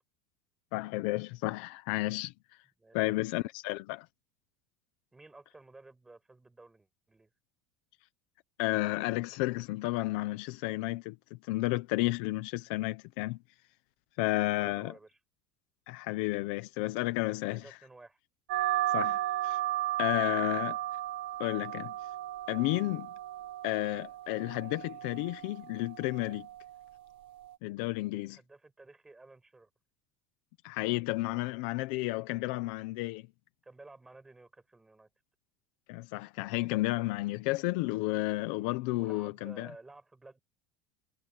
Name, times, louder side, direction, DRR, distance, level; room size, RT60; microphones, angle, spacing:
voice 1, 0.7-2.3 2.9-4.1 8.6-11.2 11.4-13.4 14.2-14.9 15.9-17.6 18.9-19.6 20.0-20.8 21.4-21.9 22.5-23.1 23.6-26.5 27.6-28.4 30.6-33.3 35.9-39.7, left 20 dB, 60° left, 1.1 m, -32 dB
voice 2, 2.8-3.3 5.1-7.3 14.5-15.2 17.5-18.2 20.3-20.6 28.2-29.7 33.6-35.1 38.9-40.4, right 2 dB, 5° right, 7.8 m, -54 dB
sound 1, 18.5-27.6, right 15 dB, 80° right, 1.5 m, -35 dB
cardioid pair, 175°, 6 cm